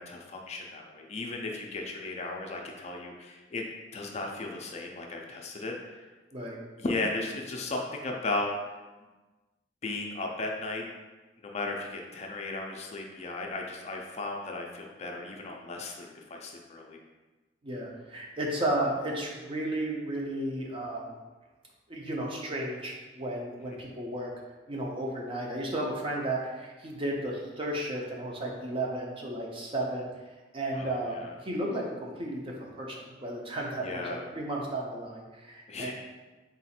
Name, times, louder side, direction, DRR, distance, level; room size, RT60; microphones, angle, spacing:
voice 1, 0.0-3.6 3.9-6.1 6.8-8.8 9.8-10.8 11.4-17.0 30.7-31.3 33.8-34.2 35.7-35.9, left 2 dB, 35° left, 1 dB, 0.4 m, -35 dB
voice 2, 17.6-21.1 21.9-24.3 24.7-30.1 30.5-35.9, right 1 dB, 30° right, -2 dB, 0.6 m, -33 dB
3.8 x 2.4 x 4.2 m, 1.2 s
head